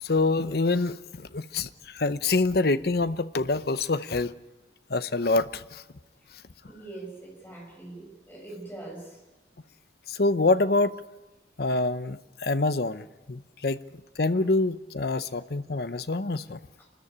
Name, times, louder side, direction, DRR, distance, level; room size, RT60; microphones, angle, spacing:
voice 1, 0.0-4.4 4.9-5.8 10.1-11.0 11.6-13.8 14.2-16.6, left 3 dB, 55° left, 0.8 m, -26 dB
voice 2, 6.7-9.2 14.3-14.5 15.2-15.3 16.8-16.9, right 2 dB, 10° left, 5.3 m, -43 dB
28.0 x 13.5 x 9.9 m
head